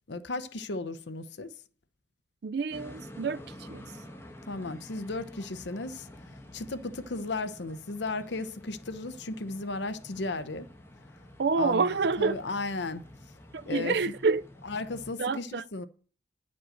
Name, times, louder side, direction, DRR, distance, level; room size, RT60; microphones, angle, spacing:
voice 1, 0.1-1.5 4.5-6.1 6.5-10.7 11.6-13.0 13.7-13.9 14.6-15.9, left 3 dB, 75° left, 0.8 m, -35 dB
voice 2, 2.4-3.4 3.7-3.8 11.4-12.4 13.5-14.4 15.2-15.6, right 4 dB, 60° right, 0.4 m, -27 dB
sound 1, 2.7-15.1, left 1 dB, 15° left, 1.3 m, -49 dB
9.9 x 5.4 x 7.7 m
head